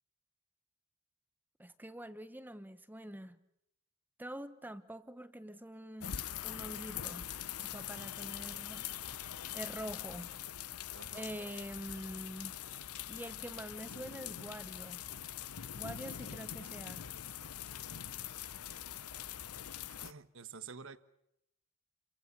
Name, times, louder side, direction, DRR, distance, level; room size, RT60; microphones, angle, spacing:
voice 1, 1.6-3.4 4.2-6.2 6.4-7.3 7.6-8.9 9.5-10.4 11.1-12.5 13.1-15.3 15.7-17.1 17.4-17.5, right 1 dB, 10° right, 1.0 m, -46 dB
sound 1, 6.0-20.1, left 10 dB, 85° left, 0.9 m, -43 dB
voice 2, 10.9-11.4 19.9-21.0, right 5 dB, 60° right, 1.3 m, -49 dB
29.5 x 23.5 x 6.9 m
head